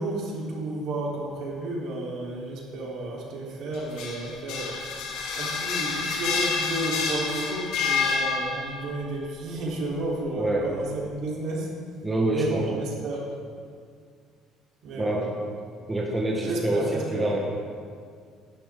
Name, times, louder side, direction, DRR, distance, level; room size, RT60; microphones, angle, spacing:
voice 1, 0.0-4.7 5.3-11.7 12.3-13.2 14.8-15.2 16.4-17.3, right 2 dB, 60° right, -4 dB, 3.9 m, -32 dB
sound 1, 3.7-8.9, left 5 dB, 75° left, 2.0 m, -28 dB
voice 2, 10.4-10.7 12.0-12.6 15.0-15.4 15.9-17.4, right 1 dB, 10° right, -2 dB, 1.4 m, -26 dB
18.0 x 11.5 x 3.8 m, 2.1 s
cardioid pair, 155°, 0 cm